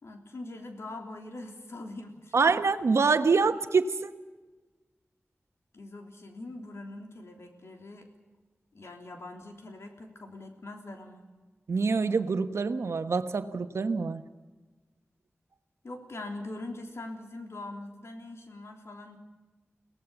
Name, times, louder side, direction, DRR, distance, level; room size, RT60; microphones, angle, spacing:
voice 1, 0.0-2.4 5.7-8.1 8.7-11.3 15.8-19.2, left 2 dB, 75° left, 4 dB, 3.4 m, -42 dB
voice 2, 2.3-4.1 11.7-14.2, right 4 dB, 90° right, 9 dB, 1.2 m, -25 dB
23.5 x 17.5 x 7.1 m, 1.2 s
wide cardioid pair, 90°, 5 cm